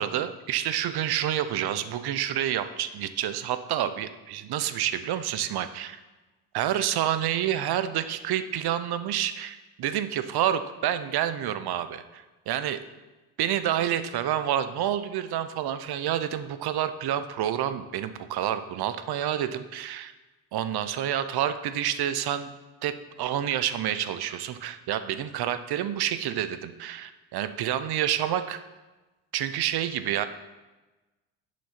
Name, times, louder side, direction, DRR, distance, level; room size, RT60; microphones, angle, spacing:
voice 1, 0.0-6.0 6.5-12.8 13.4-20.1 20.5-22.5 22.8-22.9 23.2-28.6 29.3-30.3, right 10 dB, 55° right, 11 dB, 0.8 m, -28 dB
7.0 x 6.2 x 5.9 m, 1.2 s
supercardioid pair, 65°, 47 cm